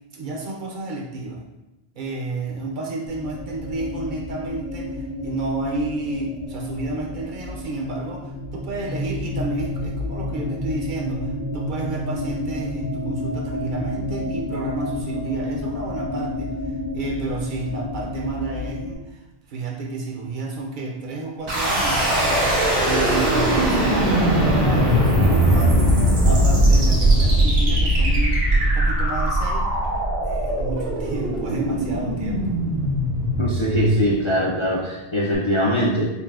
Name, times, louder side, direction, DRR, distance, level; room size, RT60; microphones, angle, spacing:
voice 1, 0.1-1.4 2.0-19.2 19.5-29.7 30.2-32.6, right 2 dB, 60° right, 0 dB, 0.6 m, -31 dB
sound 1, 3.1-18.9, left 1 dB, 80° left, 0.8 m, -30 dB
sound 2, 21.5-34.4, right 1 dB, 85° right, 1.4 m, -19 dB
voice 2, 33.4-36.1, equal, 45° left, -4 dB, 0.4 m, -21 dB
5.3 x 2.4 x 2.4 m, 1.0 s
omnidirectional pair, 1.1 m